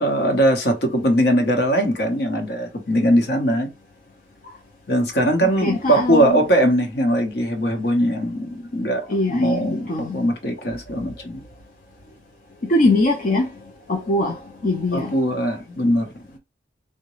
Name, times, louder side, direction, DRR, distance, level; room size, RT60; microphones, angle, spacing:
voice 1, 0.0-3.7 4.9-11.4 14.9-16.4, equal, 60° left, 0.9 m, -21 dB
voice 2, 5.4-6.4 9.1-10.2 12.6-13.5 13.9-15.2, left 2 dB, 45° left, 0.5 m, -22 dB
3.8 x 2.2 x 3.0 m
head